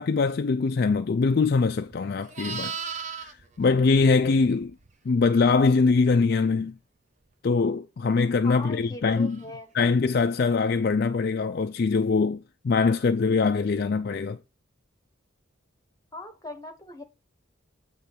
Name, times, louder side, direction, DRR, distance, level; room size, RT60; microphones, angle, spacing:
voice 1, 0.0-3.3 3.6-4.7 5.1-6.7 7.4-9.4 9.7-14.4, left 4 dB, 50° left, 0.4 m, -23 dB
Livestock farm animals working animals, 1.7-4.9 9.3-9.5, right 6 dB, 35° right, 0.5 m, -38 dB
voice 2, 8.4-9.7 16.1-17.0, left 2 dB, 15° left, 1.1 m, -39 dB
8.2 x 3.2 x 5.9 m
head